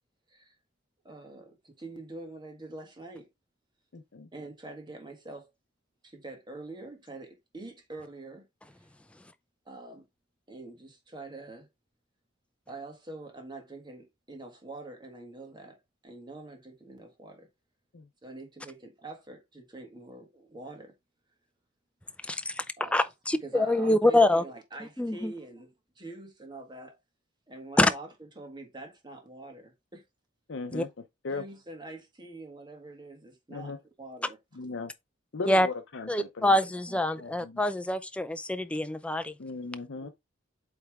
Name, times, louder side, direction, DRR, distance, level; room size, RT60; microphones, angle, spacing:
voice 1, 1.0-3.3 4.3-5.5 6.0-8.5 8.8-8.9 9.6-10.1 10.5-11.7 12.7-15.8 16.0-17.5 18.2-20.9 22.8-23.1 23.4-27.0 27.5-30.0 31.3-34.4 36.9-37.0 40.0-40.1, right 2 dB, 25° right, 1.7 m, -45 dB
voice 2, 3.9-4.3 17.9-18.1 30.5-30.9 31.2-31.4 33.5-33.8 34.5-34.9 35.3-36.6 37.2-37.6 39.4-40.1, left 3 dB, 75° left, 0.7 m, -37 dB
voice 3, 22.3-22.6 22.9-24.4 25.0-25.3 27.8-27.9 30.7-30.8 35.5-35.7 36.1-39.3, left 1 dB, 5° left, 0.5 m, -25 dB
8.2 x 3.4 x 3.5 m
head